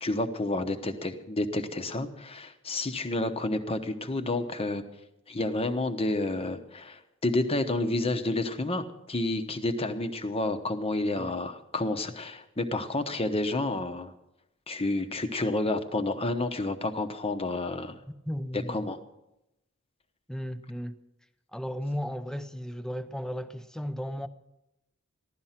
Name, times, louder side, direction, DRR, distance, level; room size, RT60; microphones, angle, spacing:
voice 1, 0.0-4.8 5.3-14.1 14.7-18.0 18.5-19.0, left 2 dB, 25° left, 1.0 m, -30 dB
voice 2, 18.3-18.9 20.3-21.0 21.5-24.3, equal, 5° left, 0.7 m, -35 dB
15.5 x 12.0 x 5.8 m
head